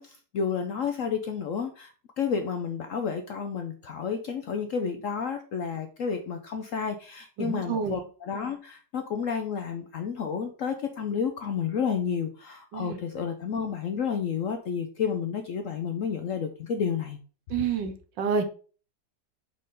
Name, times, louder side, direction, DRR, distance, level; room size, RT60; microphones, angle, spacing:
voice 1, 0.0-1.9 2.2-17.2, left 6 dB, 65° left, 6 dB, 0.8 m, -31 dB
voice 2, 7.4-8.0 12.7-13.0 17.5-18.4, right 6 dB, 80° right, 8 dB, 1.6 m, -28 dB
4.9 x 4.3 x 5.2 m, 0.39 s
omnidirectional pair, 2.0 m